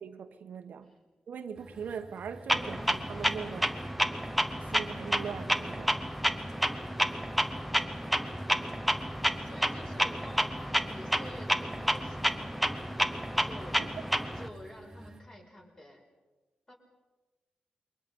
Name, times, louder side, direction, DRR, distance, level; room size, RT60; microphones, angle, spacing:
voice 1, 0.0-0.9 1.3-3.8 4.6-6.1 13.4-13.5, right 7 dB, 70° right, 1.1 m, -41 dB
sound 1, 1.5-15.2, right 1 dB, 20° right, 1.8 m, -51 dB
Clock, 2.5-14.5, equal, ahead, 0.9 m, -30 dB
voice 2, 7.5-8.2 9.4-12.6 13.3-13.9 14.4-16.0 16.7-16.8, left 1 dB, 25° left, 5.0 m, -49 dB
28.5 x 23.0 x 5.4 m
wide cardioid pair, 145°, 3 cm